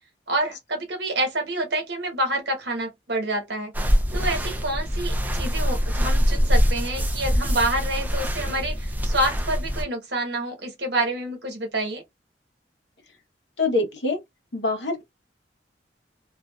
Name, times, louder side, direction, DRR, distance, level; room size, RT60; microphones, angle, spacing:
voice 1, 0.3-3.7 4.1-12.0, right 1 dB, 65° right, 1.1 m, -27 dB
sound 1, 3.7-9.8, equal, 10° right, 0.3 m, -24 dB
voice 2, 13.6-14.2 14.5-15.0, left 3 dB, 75° left, 0.9 m, -24 dB
2.5 x 2.3 x 2.3 m
head